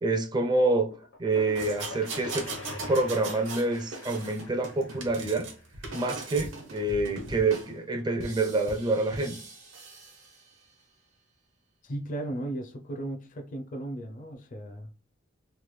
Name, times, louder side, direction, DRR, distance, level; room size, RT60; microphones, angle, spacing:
voice 1, 0.0-0.9 1.2-2.5 2.9-5.5 5.9-9.4, right 2 dB, 20° right, 0.4 m, -27 dB
sound 1, 0.9-6.5, left 3 dB, 75° left, 0.9 m, -45 dB
sound 2, 1.6-3.7 4.0-5.5 5.8-6.5 7.2-7.3, right 4 dB, 65° right, 0.8 m, -39 dB
sound 3, 3.4-10.8, right 1 dB, 85° right, 1.1 m, -44 dB
voice 2, 11.8-14.9, right 1 dB, 40° left, 0.5 m, -36 dB
3.3 x 2.2 x 3.1 m
head